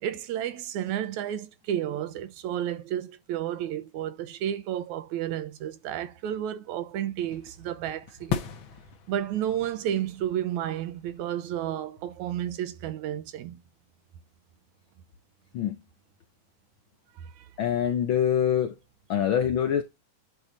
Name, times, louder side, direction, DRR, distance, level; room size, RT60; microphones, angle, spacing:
voice 1, 0.0-8.4 9.1-13.6 17.2-17.5, right 11 dB, 80° right, 2.2 m, -32 dB
sound 1, 7.2-12.5, left 8 dB, 55° left, 1.5 m, -39 dB
voice 2, 17.6-18.7 19.1-19.8, left 9 dB, 80° left, 1.1 m, -24 dB
10.0 x 4.4 x 3.9 m
omnidirectional pair, 3.4 m